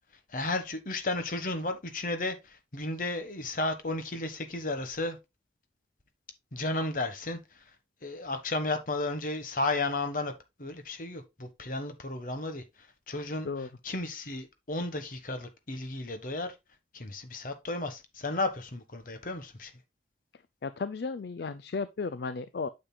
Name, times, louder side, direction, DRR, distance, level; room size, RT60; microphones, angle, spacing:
voice 1, 0.3-5.2 6.5-7.4 8.0-10.3 10.6-12.6 13.1-13.5 13.8-16.5 16.9-19.7, left 2 dB, 50° left, 1.2 m, -33 dB
voice 2, 20.6-22.7, left 4 dB, 65° left, 0.4 m, -34 dB
8.9 x 6.6 x 2.2 m
head